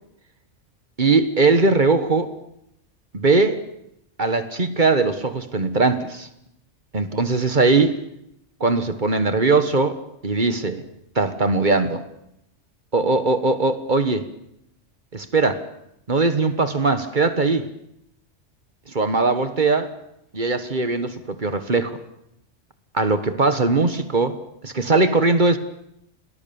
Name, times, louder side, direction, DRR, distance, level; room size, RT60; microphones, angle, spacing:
voice 1, 1.0-2.3 3.1-3.6 4.2-6.3 6.9-8.0 8.6-10.0 10.2-10.8 11.1-12.0 12.9-14.2 15.1-15.6 16.1-17.7 18.9-19.9 20.3-22.0 22.9-24.4 24.6-25.6, right 3 dB, 40° right, 10 dB, 1.5 m, -20 dB
29.5 x 20.0 x 7.0 m, 0.78 s
omnidirectional pair, 1.3 m